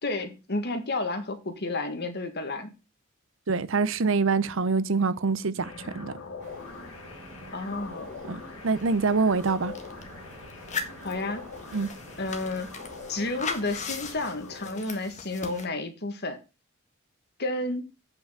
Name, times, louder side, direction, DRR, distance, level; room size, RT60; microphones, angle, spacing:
voice 1, 0.0-2.7 7.5-8.1 11.0-11.4 12.2-12.7 13.1-16.4 17.4-17.8, left 2 dB, 55° left, 1.8 m, -31 dB
voice 2, 3.5-6.1 8.3-9.7 11.7-11.9, right 4 dB, 65° right, 0.7 m, -25 dB
sound 1, 5.6-14.8, left 4 dB, 80° left, 1.7 m, -43 dB
sound 2, 6.4-14.3, right 2 dB, 35° right, 5.4 m, -49 dB
sound 3, 8.8-8.9 9.1-10.0 10.5-15.7, left 5 dB, 35° left, 1.6 m, -38 dB
8.1 x 5.9 x 5.7 m
head